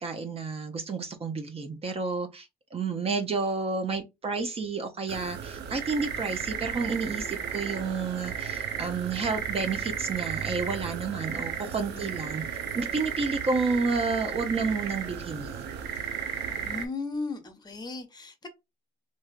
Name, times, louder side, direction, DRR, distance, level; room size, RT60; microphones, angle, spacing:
voice 1, 0.0-12.4 12.7-15.7, right 4 dB, 35° right, 0.7 m, -30 dB
sound 1, 5.1-16.9, right 7 dB, 80° right, 0.6 m, -34 dB
voice 2, 16.6-18.5, left 3 dB, 25° left, 0.9 m, -36 dB
3.2 x 2.7 x 2.3 m
cardioid pair, 110°, 17 cm